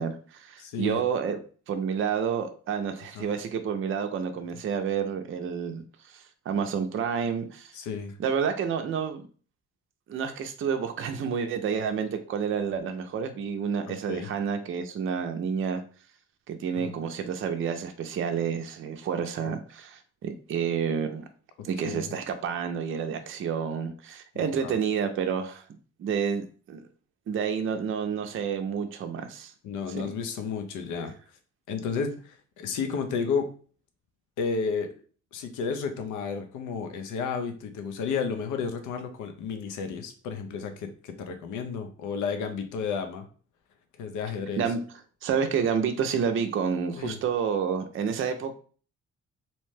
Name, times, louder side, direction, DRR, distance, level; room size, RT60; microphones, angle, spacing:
voice 1, 0.0-1.4 1.7-7.7 8.2-9.2 10.1-15.8 16.5-21.3 21.6-25.6 26.0-26.8 27.3-29.5 29.9-30.0 44.6-44.8 45.2-48.5, right 7 dB, 45° right, 6 dB, 0.5 m, -29 dB
voice 2, 0.6-1.0 3.1-3.3 7.7-8.1 13.9-14.3 16.7-16.9 19.4-19.5 21.8-22.1 24.3-24.8 29.6-31.1 31.7-33.5 34.4-34.9 35.3-43.3 44.0-44.6 47.0-47.2, left 5 dB, 85° left, 6 dB, 0.6 m, -32 dB
2.7 x 2.1 x 3.2 m, 0.41 s
cardioid pair, 90°, 30 cm